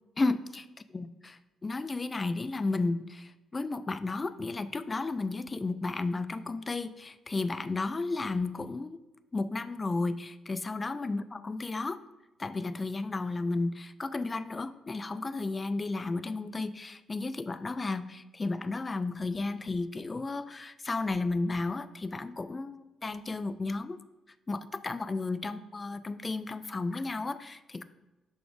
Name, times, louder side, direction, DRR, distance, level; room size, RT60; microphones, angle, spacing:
voice 1, 0.2-9.0 9.3-12.0 12.4-24.0 24.5-27.8, left 3 dB, 25° left, 13 dB, 0.3 m, -33 dB
6.5 x 4.2 x 3.4 m, 1.1 s
cardioid pair, 90°, 0 cm